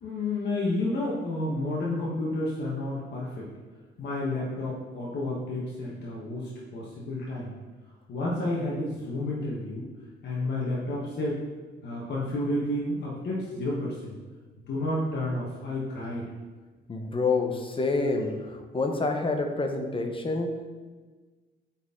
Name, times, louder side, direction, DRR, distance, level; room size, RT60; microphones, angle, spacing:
voice 1, 0.0-3.5 4.0-7.5 8.1-9.9 10.2-11.4 11.8-14.1 14.7-16.2, left 1 dB, 60° left, -5 dB, 1.4 m, -30 dB
voice 2, 16.9-20.7, left 3 dB, 25° left, 4 dB, 1.0 m, -28 dB
7.8 x 4.4 x 3.8 m, 1.4 s
cardioid pair, 90°, 20 cm